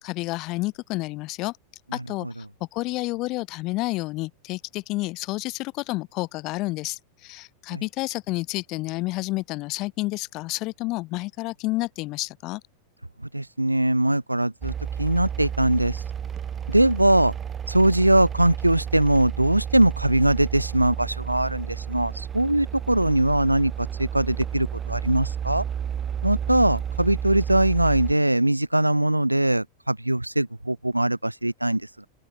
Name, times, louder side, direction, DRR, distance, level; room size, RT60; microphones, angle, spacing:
voice 1, 0.0-1.5 1.9-2.3 2.7-12.6, left 21 dB, 40° left, 2.5 m, -30 dB
voice 2, 13.3-16.0 16.7-17.3 17.7-25.6 26.2-32.1, right 1 dB, 85° right, 3.1 m, -21 dB
sound 1, 14.6-28.1, right 8 dB, 25° right, 3.0 m, -32 dB
open air
figure-of-eight pair, 90°, 0 cm